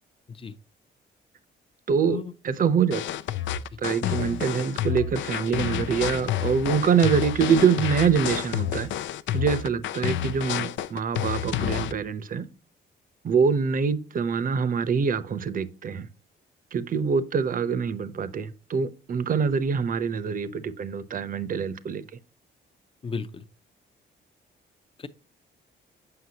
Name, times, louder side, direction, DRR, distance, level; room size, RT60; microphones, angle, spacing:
voice 1, 1.9-3.0 3.8-8.9 9.3-12.5 13.2-16.1 16.7-22.0, right 6 dB, 45° right, 0.7 m, -25 dB
sound 1, 2.9-11.9, left 10 dB, 70° left, 0.5 m, -29 dB
voice 2, 23.0-23.5 25.0-25.1, left 5 dB, 25° left, 0.7 m, -35 dB
7.7 x 5.6 x 2.8 m
cardioid pair, 90°, 20 cm